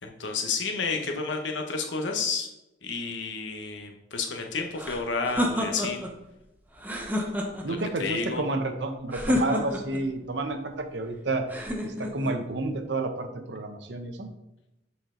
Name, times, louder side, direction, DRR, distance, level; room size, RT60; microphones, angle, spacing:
voice 1, 0.0-2.5 2.8-6.0 7.7-8.5, left 4 dB, 85° left, 3 dB, 1.0 m, -31 dB
sound 1, 4.8-6.1 6.8-7.8 9.1-10.0 11.5-12.4, left 1 dB, 10° right, 0.9 m, -29 dB
voice 2, 7.6-11.4 11.8-14.3, right 2 dB, 65° right, 7 dB, 0.8 m, -30 dB
7.8 x 4.4 x 3.8 m, 0.92 s
head